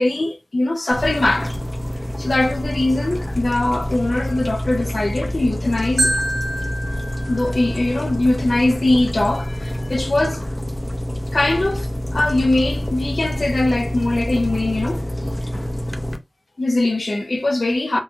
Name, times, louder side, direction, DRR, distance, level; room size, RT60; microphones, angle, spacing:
voice 1, 0.0-1.6 2.2-6.2 7.3-10.4 11.3-15.1 16.6-18.0, left 2 dB, 65° left, 0.6 m, -21 dB
sound 1, 0.9-16.2, equal, 25° left, 0.4 m, -27 dB
Marimba xylophone, 6.0-8.1, right 1 dB, 85° right, 0.8 m, -26 dB
3.1 x 2.4 x 2.5 m
wide cardioid pair, 55°, 0 cm